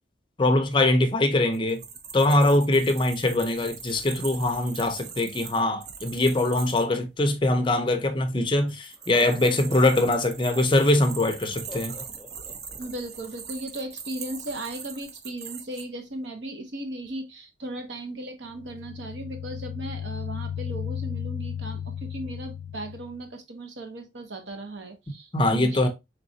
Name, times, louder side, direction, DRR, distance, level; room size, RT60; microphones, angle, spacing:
voice 1, 0.4-1.8 2.1-11.9 25.3-25.9, left 1 dB, 25° left, 0.5 m, -22 dB
sound 1, 1.5-6.8 8.7-15.8, right 6 dB, 55° right, 0.6 m, -41 dB
Laughter, 8.2-8.3 9.0-10.7 11.7-12.9, left 2 dB, 10° right, 0.7 m, -44 dB
voice 2, 12.8-25.9, right 1 dB, 75° right, 0.9 m, -37 dB
sound 2, 18.5-23.3, left 8 dB, 85° left, 0.3 m, -35 dB
3.9 x 3.4 x 2.7 m
head